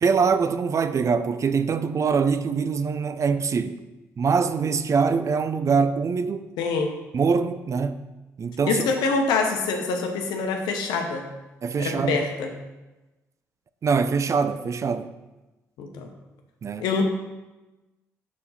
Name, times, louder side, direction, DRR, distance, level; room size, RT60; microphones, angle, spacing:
voice 1, 0.0-3.8 4.2-6.5 7.1-8.0 8.4-8.8 11.6-12.2 13.8-15.1 16.6-16.8, right 5 dB, 45° right, 0.4 m, -23 dB
voice 2, 6.6-6.9 8.7-11.3 11.8-12.5 15.8-16.1 16.8-17.0, left 4 dB, 80° left, 0.8 m, -25 dB
5.2 x 4.5 x 5.4 m
hypercardioid pair, 50°, 7 cm